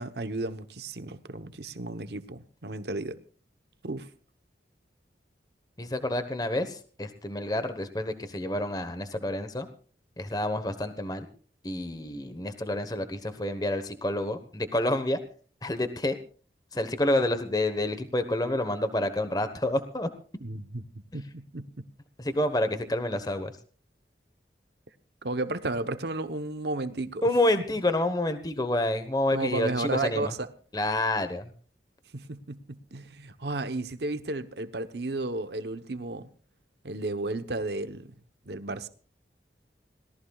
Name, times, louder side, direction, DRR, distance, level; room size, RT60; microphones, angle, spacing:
voice 1, 0.0-3.2 3.8-4.1 20.4-20.8 21.1-21.9 25.2-27.3 29.3-30.5 32.1-36.3 36.8-38.1 38.5-38.9, right 2 dB, 70° right, 1.0 m, -33 dB
voice 2, 5.8-9.7 10.2-11.3 11.6-15.2 15.6-16.2 16.7-20.1 22.2-23.5 27.2-30.3 30.7-31.5, left 1 dB, 20° left, 1.2 m, -28 dB
26.0 x 18.0 x 2.4 m
head